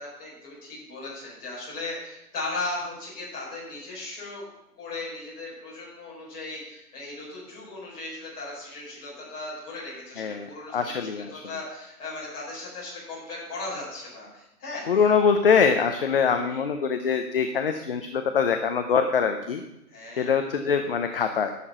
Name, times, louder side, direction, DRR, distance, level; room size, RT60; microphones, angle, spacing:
voice 1, 0.0-4.4 4.8-15.2 16.3-16.7 19.9-20.4, left 2 dB, 20° left, -6 dB, 4.7 m, -37 dB
voice 2, 10.7-11.4 14.9-19.6 20.2-21.5, left 6 dB, 40° left, 7 dB, 0.6 m, -23 dB
11.5 x 6.8 x 5.6 m, 0.89 s
hypercardioid pair, 155°, 46 cm